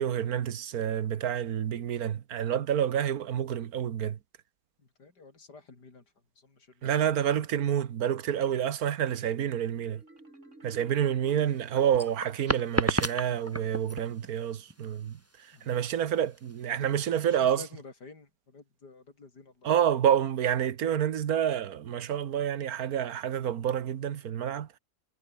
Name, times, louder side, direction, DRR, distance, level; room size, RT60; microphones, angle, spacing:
voice 1, 0.0-4.2 6.8-10.0 10.6-15.2 15.7-17.6 19.6-24.7, right 9 dB, 65° right, 1.5 m, -28 dB
voice 2, 4.8-6.0 6.4-7.1 11.2-11.7 15.5-15.8 17.3-19.7, left 3 dB, 75° left, 4.6 m, -51 dB
Marimba xylophone, 9.9-12.7, right 2 dB, 45° right, 6.5 m, -54 dB
sound 1, 11.3-17.3, right 1 dB, 10° right, 1.8 m, -33 dB
omnidirectional pair, 1.8 m